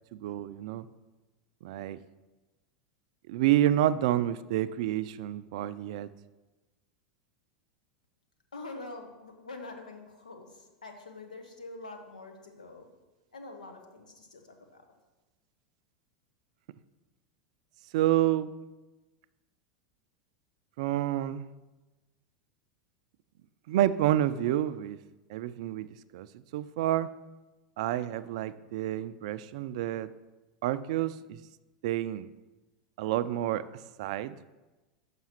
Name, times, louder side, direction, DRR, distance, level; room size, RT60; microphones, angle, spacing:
voice 1, 0.1-0.9 1.6-2.0 3.3-6.1 17.9-18.5 20.8-21.5 23.7-25.0 25.3-25.9 26.1-27.1 27.8-30.1 30.6-31.4 31.8-32.3 33.0-33.6 34.0-34.4, right 13 dB, 60° right, 15 dB, 0.3 m, -29 dB
voice 2, 8.5-12.9 13.3-14.8, left 2 dB, 85° left, 4 dB, 1.1 m, -45 dB
5.8 x 5.5 x 5.8 m, 1.1 s
hypercardioid pair, 90°, 4 cm